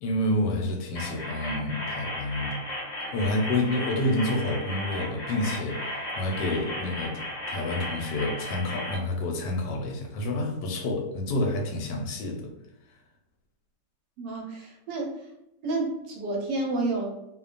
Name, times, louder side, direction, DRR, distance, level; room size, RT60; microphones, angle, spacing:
voice 1, 0.0-2.6 3.1-12.5, left 1 dB, 85° left, 2 dB, 1.3 m, -29 dB
sound 1, 0.9-8.9, left 1 dB, 35° left, 0.8 m, -35 dB
voice 2, 14.2-15.3 15.6-17.1, right 2 dB, 85° right, 0 dB, 1.3 m, -30 dB
3.0 x 2.2 x 2.4 m, 0.83 s
omnidirectional pair, 1.8 m